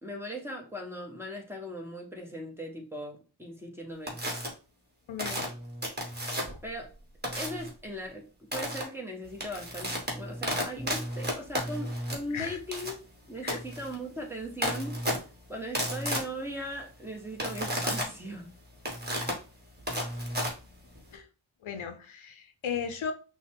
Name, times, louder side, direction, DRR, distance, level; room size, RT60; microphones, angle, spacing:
voice 1, 0.0-4.2 6.6-6.9 7.4-12.9 13.3-14.9 15.5-18.5, equal, 5° right, 1.3 m, -39 dB
sound 1, 4.1-4.5 5.2-6.7 7.2-7.7 8.5-8.8 9.2-21.1, equal, 20° right, 1.8 m, -33 dB
voice 2, 5.1-5.5 12.3-12.6 13.4-13.6 21.1-21.3 21.6-23.1, left 7 dB, 80° left, 0.7 m, -36 dB
5.8 x 2.3 x 3.5 m
wide cardioid pair, 70°, 47 cm